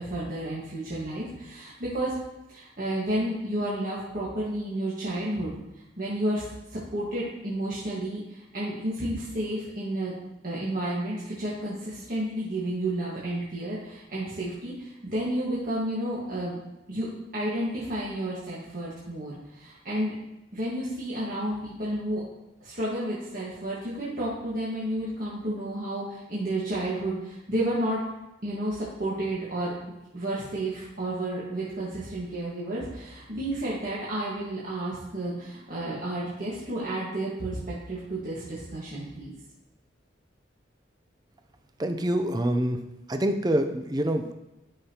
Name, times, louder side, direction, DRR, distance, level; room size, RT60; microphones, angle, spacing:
voice 1, 0.0-2.2 2.5-6.4 6.7-10.1 10.4-16.6 16.9-17.1 17.3-20.1 20.5-22.2 22.6-28.0 28.4-29.7 30.1-39.3, right 1 dB, 45° right, -8 dB, 1.6 m, -31 dB
voice 2, 41.8-42.8 43.1-44.3, right 1 dB, 20° right, 6 dB, 0.5 m, -26 dB
11.5 x 5.5 x 2.9 m, 0.94 s
head